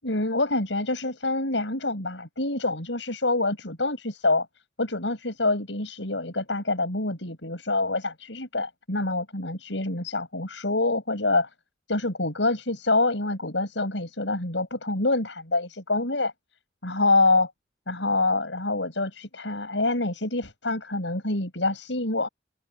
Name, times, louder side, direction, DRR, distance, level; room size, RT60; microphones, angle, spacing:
voice 1, 0.0-4.5 4.8-11.5 11.9-16.3 16.8-17.5 17.9-22.3, left 2 dB, 80° left, 7.0 m, -26 dB
open air
head